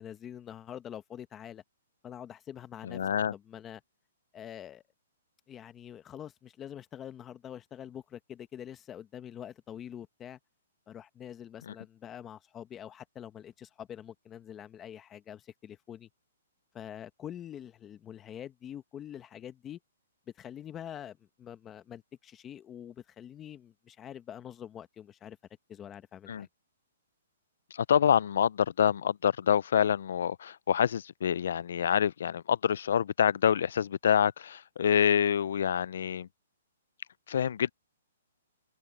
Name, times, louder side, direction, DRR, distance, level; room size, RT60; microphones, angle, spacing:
voice 1, 0.0-1.6 2.0-3.0 3.3-3.8 4.3-4.8 5.5-10.4 10.9-16.1 16.7-19.8 20.3-25.4 25.7-26.5, left 10 dB, 10° left, 0.9 m, -45 dB
voice 2, 2.8-3.3 11.7-11.8 26.3-26.5 27.7-36.3 37.3-37.7, left 8 dB, 60° left, 0.3 m, -26 dB
open air
hypercardioid pair, 170°, 0 cm